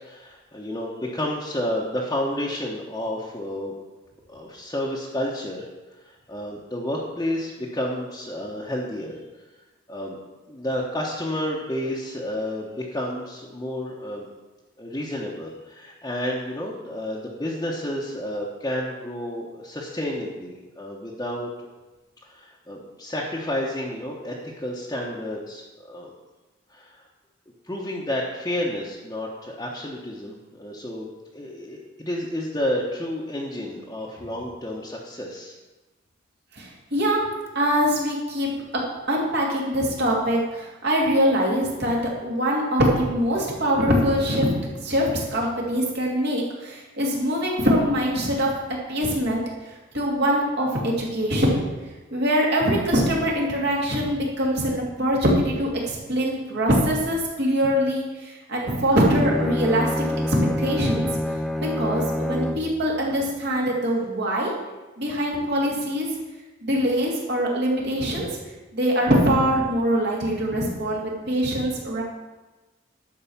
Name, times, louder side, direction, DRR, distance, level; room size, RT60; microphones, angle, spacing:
voice 1, 0.0-3.8 4.3-5.7 6.0-9.2 9.9-10.2 10.5-14.3 14.8-21.5 22.2-26.1 26.7-27.0 27.7-35.5, left 1 dB, 20° left, -4 dB, 1.1 m, -30 dB
voice 2, 36.5-37.2 37.5-38.5 39.1-44.5 44.8-48.5 48.9-49.4 49.9-51.6 52.1-59.9 60.3-61.1 61.6-64.5 65.0-66.1 66.6-68.3 68.7-72.0, equal, 60° right, -2 dB, 2.7 m, -23 dB
Bowed string instrument, 58.9-62.8, left 1 dB, ahead, 0.4 m, -27 dB
11.5 x 4.8 x 7.3 m, 1.2 s
head